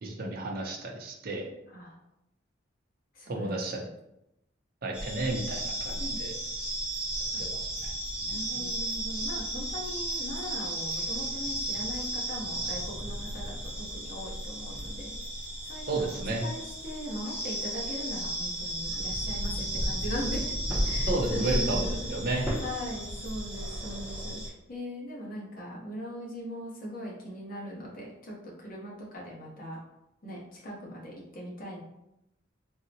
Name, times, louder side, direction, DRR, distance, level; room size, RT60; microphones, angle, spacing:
voice 1, 0.0-1.5 3.3-3.8 4.8-6.3 7.4-7.9 8.5-8.7 15.9-16.4 21.1-22.4, right 2 dB, 50° right, 0 dB, 0.5 m, -32 dB
voice 2, 3.1-3.9 6.0-6.2 8.3-15.2 15.7-16.1 16.4-20.6 20.8-29.8 30.2-31.8, equal, 45° left, -4 dB, 0.9 m, -40 dB
sound 1, 4.9-24.5, right 1 dB, 5° right, 0.6 m, -34 dB
3.7 x 2.1 x 2.7 m, 0.86 s
head